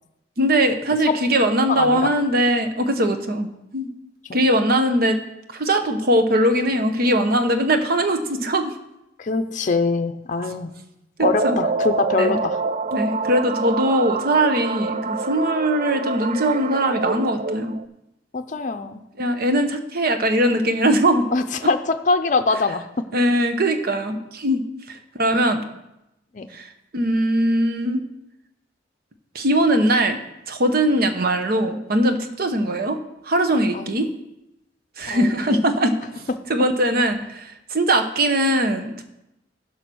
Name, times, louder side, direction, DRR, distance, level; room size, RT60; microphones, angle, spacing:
voice 1, 0.4-3.9 4.3-5.2 5.5-8.7 11.2-11.6 12.2-12.4 12.9-17.7 19.2-21.3 23.1-25.6 26.5-28.0 29.3-30.2 30.5-33.0 33.2-34.1 35.0-36.2 36.5-39.0, right 1 dB, 55° right, 7 dB, 0.9 m, -21 dB
voice 2, 1.7-2.1 9.2-10.7 11.2-12.6 18.3-19.0 21.3-22.9 26.3-26.5 32.7-32.8 33.7-33.9 35.1-35.6, left 3 dB, 45° left, 7 dB, 0.6 m, -23 dB
sound 1, 11.2-17.8, right 4 dB, 40° right, 0.4 m, -26 dB
11.5 x 5.6 x 6.2 m, 0.88 s
head